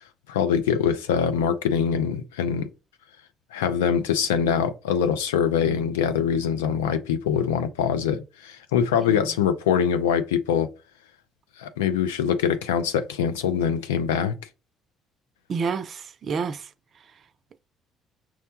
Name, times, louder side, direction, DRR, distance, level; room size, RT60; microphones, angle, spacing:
voice 1, 0.3-2.7 3.5-10.7 11.6-14.3, left 8 dB, 75° left, 0.4 m, -23 dB
voice 2, 15.5-17.1, right 5 dB, 45° right, 0.4 m, -30 dB
5.9 x 2.1 x 2.8 m
figure-of-eight pair, 50°, 0 cm